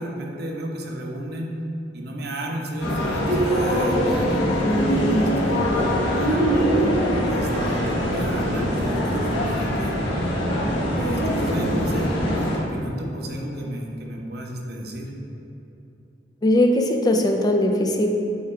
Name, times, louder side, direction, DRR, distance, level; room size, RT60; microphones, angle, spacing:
voice 1, 0.0-1.5 1.9-5.8 6.2-6.6 7.2-9.9 10.9-15.1, right 1 dB, 60° right, 0 dB, 0.9 m, -33 dB
sound 1, 2.8-12.6, equal, 70° left, 1.3 m, -22 dB
voice 2, 4.6-5.4 16.4-18.1, left 1 dB, 20° left, 3 dB, 0.4 m, -20 dB
8.3 x 3.5 x 4.4 m, 2.9 s
head